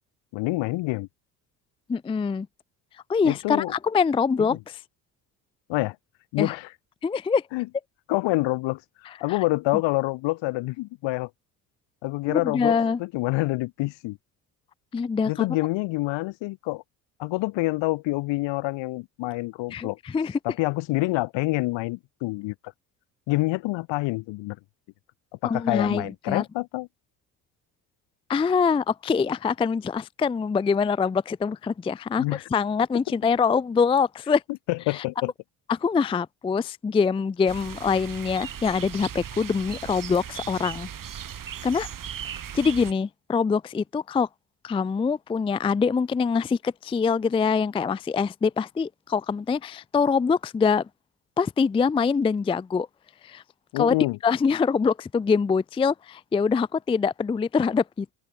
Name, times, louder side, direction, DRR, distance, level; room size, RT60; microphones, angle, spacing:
voice 1, 0.3-1.1 3.2-3.7 4.5-4.6 5.7-6.0 6.3-6.7 7.5-7.7 8.1-8.8 9.2-11.3 12.0-14.2 15.3-16.8 17.2-20.0 20.4-22.7 23.3-24.6 25.4-26.9 32.2-32.4 34.7-35.3 53.7-54.2, left 21 dB, 70° left, 4.2 m, -27 dB
voice 2, 1.9-2.5 3.1-4.8 6.4-6.5 7.0-7.4 9.3-9.4 12.3-13.0 14.9-15.5 19.7-20.4 25.4-26.4 28.3-34.4 34.9-35.0 35.7-40.9 41.6-41.9 42.5-44.3 44.6-50.9 51.4-52.9 53.2-53.4 53.8-53.9 54.2-58.1, left 5 dB, 15° left, 0.4 m, -24 dB
sound 1, 37.5-42.9, right 9 dB, 45° right, 2.6 m, -37 dB
open air
hypercardioid pair, 60°, 45 cm